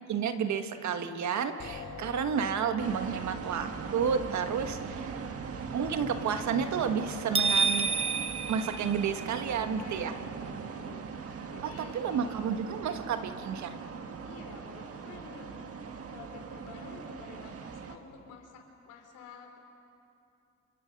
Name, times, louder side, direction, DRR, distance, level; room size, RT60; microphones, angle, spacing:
voice 1, 0.1-5.1 5.7-7.9 8.5-10.1 11.6-13.7, right 7 dB, 70° right, 7 dB, 1.7 m, -31 dB
sound 1, 1.6-11.4, left 4 dB, 60° left, 6.2 m, -50 dB
sound 2, 2.8-18.0, right 5 dB, 50° right, 1.7 m, -40 dB
sound 3, 7.3-9.5, right 4 dB, 20° right, 0.6 m, -29 dB
voice 2, 9.7-11.1 11.5-12.6 13.0-13.1 14.2-15.6 16.1-19.6, left 4 dB, 85° left, 3 dB, 3.8 m, -50 dB
28.5 x 27.0 x 5.4 m, 2.8 s
cardioid pair, 90°, 30 cm